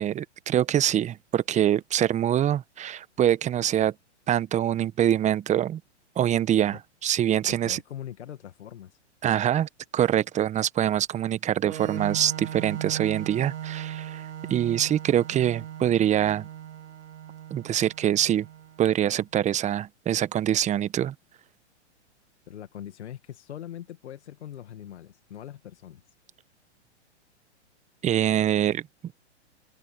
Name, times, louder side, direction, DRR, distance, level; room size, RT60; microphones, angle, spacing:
voice 1, 0.0-3.9 4.3-5.8 6.2-7.8 9.2-14.2 14.5-16.5 17.5-18.5 18.8-21.1 28.0-28.8, right 11 dB, 20° right, 1.2 m, -24 dB
voice 2, 7.5-9.0 22.5-26.0, left 11 dB, 70° left, 2.1 m, -41 dB
Organ, 11.6-19.2, right 10 dB, 70° right, 2.3 m, -38 dB
open air
hypercardioid pair, 115°, 35 cm